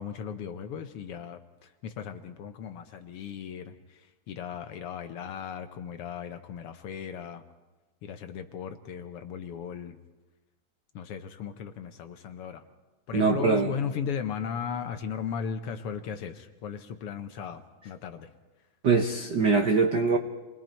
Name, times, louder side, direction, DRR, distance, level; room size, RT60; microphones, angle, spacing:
voice 1, 0.0-7.4 8.0-10.0 10.9-12.6 13.1-18.3, left 7 dB, 70° left, 7 dB, 1.4 m, -36 dB
voice 2, 13.1-13.7 18.8-20.2, right 4 dB, 90° right, 4 dB, 0.9 m, -23 dB
29.0 x 21.0 x 4.5 m, 1.2 s
omnidirectional pair, 3.5 m